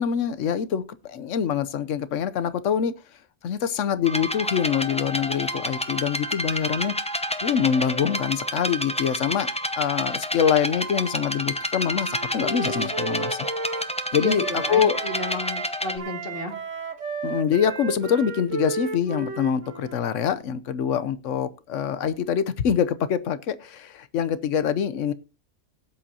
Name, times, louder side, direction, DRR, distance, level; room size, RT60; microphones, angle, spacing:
voice 1, 0.0-2.9 3.4-6.9 7.4-9.5 9.7-13.5 14.1-15.0 17.2-25.1, left 8 dB, 85° left, 14 dB, 1.1 m, -25 dB
sound 1, 4.0-16.0, left 1 dB, 5° left, 0.6 m, -29 dB
Wind instrument woodwind instrument, 11.9-15.7 16.0-20.1, right 4 dB, 80° right, 1.6 m, -34 dB
voice 2, 14.1-16.6, left 2 dB, 50° left, 4 dB, 2.4 m, -32 dB
17.5 x 8.6 x 2.8 m, 0.30 s
omnidirectional pair, 1.3 m